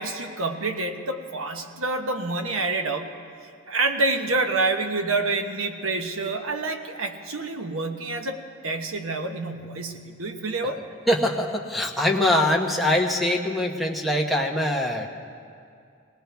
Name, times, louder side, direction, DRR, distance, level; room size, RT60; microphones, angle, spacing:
voice 1, 0.0-3.1 3.7-10.8, right 3 dB, 85° right, 5 dB, 1.1 m, -27 dB
voice 2, 11.1-15.1, left 1 dB, ahead, 0 dB, 1.0 m, -23 dB
21.0 x 18.0 x 3.5 m, 2.4 s
head